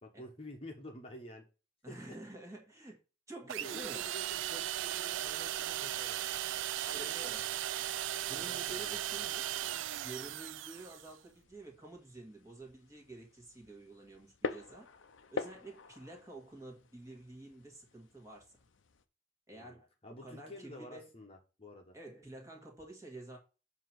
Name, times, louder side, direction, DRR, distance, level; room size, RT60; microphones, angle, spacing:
voice 1, 0.0-1.4 1.9-2.2 3.6-6.2 7.0-7.3 8.3-9.0 19.5-22.0, left 1 dB, 30° left, 1.2 m, -50 dB
voice 2, 1.8-3.0 3.3-4.0 6.8-7.4 8.2-9.6 10.0-14.9 15.3-18.5 19.5-21.1 21.9-23.4, right 2 dB, 15° right, 1.9 m, -50 dB
sound 1, 3.5-11.1, right 12 dB, 75° right, 0.3 m, -37 dB
sound 2, 9.1-19.0, left 4 dB, 75° left, 0.7 m, -47 dB
7.3 x 3.0 x 6.0 m
head